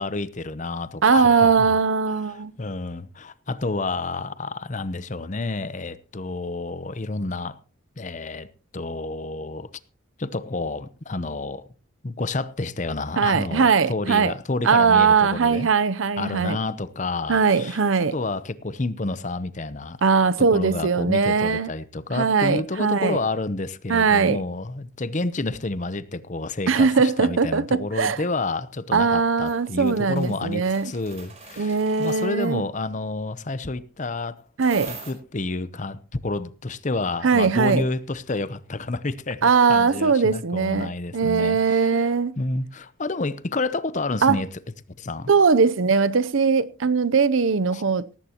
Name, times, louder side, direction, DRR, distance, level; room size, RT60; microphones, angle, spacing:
voice 1, 0.0-1.8 2.2-7.6 8.0-8.5 8.7-9.7 10.2-11.6 12.0-15.7 16.2-17.8 18.1-20.0 20.4-34.3 34.9-42.0 42.4-44.5 45.0-45.3 47.7-47.8, left 3 dB, 35° left, 0.7 m, -29 dB
voice 2, 1.0-2.5 13.2-14.3 14.6-16.6 17.3-18.1 20.0-21.7 22.1-23.2 23.9-24.4 26.7-28.2 28.9-30.9 31.6-32.6 34.6-34.9 37.2-37.8 39.4-42.3 44.2-44.4 45.3-48.2, right 5 dB, 75° right, 0.7 m, -20 dB
sound 1, 29.4-32.5 34.6-35.1, right 4 dB, 30° right, 4.4 m, -42 dB
18.0 x 15.0 x 2.9 m
head